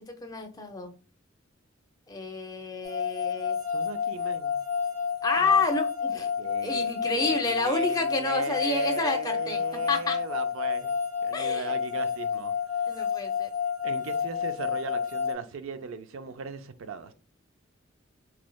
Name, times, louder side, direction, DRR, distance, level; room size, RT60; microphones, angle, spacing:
voice 1, 0.2-0.9 2.1-3.6 5.2-6.3 6.6-9.6 9.9-10.2 11.3-11.7 12.9-13.5, left 3 dB, 20° left, 0.5 m, -29 dB
sound 1, 2.8-15.3, left 7 dB, 20° right, 0.7 m, -30 dB
voice 2, 3.7-4.6 5.4-5.6 6.4-10.9 11.2-12.5 13.8-17.1, right 5 dB, 80° right, 0.4 m, -37 dB
3.1 x 3.0 x 2.2 m
head